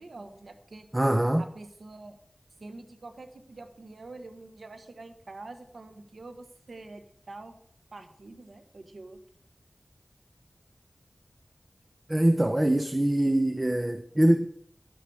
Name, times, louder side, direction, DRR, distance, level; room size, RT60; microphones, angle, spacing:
voice 1, 0.0-0.9 1.4-2.2 2.6-7.6 7.9-9.2, right 2 dB, 90° right, 1.3 m, -46 dB
voice 2, 0.9-1.5 12.1-14.5, right 1 dB, 25° right, 0.8 m, -23 dB
12.0 x 10.0 x 4.8 m
wide cardioid pair, 45°, 0 cm